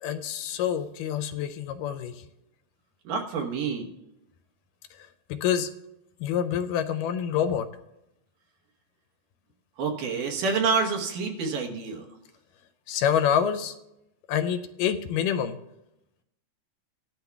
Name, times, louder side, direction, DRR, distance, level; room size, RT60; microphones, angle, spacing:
voice 1, 0.0-2.2 4.9-5.7 6.2-7.7 12.9-13.8 14.3-15.6, left 9 dB, 80° left, 7 dB, 2.1 m, -27 dB
voice 2, 3.0-3.9 9.8-12.1, right 5 dB, 75° right, 1 dB, 2.6 m, -28 dB
18.0 x 11.5 x 2.3 m, 0.88 s
omnidirectional pair, 3.9 m